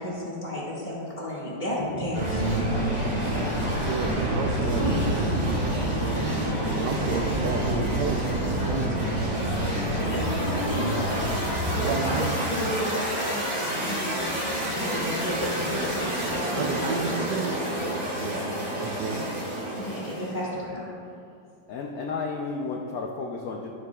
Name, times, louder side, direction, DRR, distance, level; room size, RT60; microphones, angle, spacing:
voice 1, 0.0-2.6 3.6-3.7 4.8-5.3 10.1-11.3 11.7-16.9 19.8-20.9, left 1 dB, 25° left, -7 dB, 1.9 m, -32 dB
sound 1, 2.1-20.4, right 1 dB, 25° right, 1.5 m, -28 dB
voice 2, 3.8-5.3 6.7-10.0 11.8-12.4 16.4-17.5 18.2-19.3, right 5 dB, 75° right, 4 dB, 1.0 m, -32 dB
voice 3, 21.7-23.7, left 4 dB, 75° left, 1 dB, 0.8 m, -32 dB
12.5 x 7.5 x 2.3 m, 2.6 s
omnidirectional pair, 2.1 m